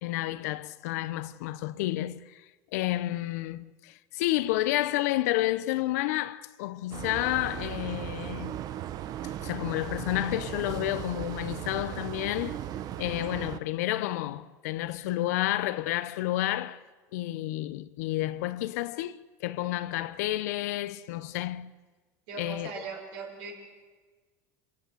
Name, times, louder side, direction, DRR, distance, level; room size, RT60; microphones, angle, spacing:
voice 1, 0.0-2.4 2.7-8.6 9.4-12.6 13.0-16.8 17.1-21.7 22.4-22.7, left 16 dB, 85° left, 0.8 m, -30 dB
sound 1, 6.9-13.6, right 11 dB, 50° right, 0.9 m, -37 dB
voice 2, 22.3-23.5, right 5 dB, 70° right, 6.0 m, -39 dB
27.0 x 16.0 x 7.9 m
supercardioid pair, 110°, 8 cm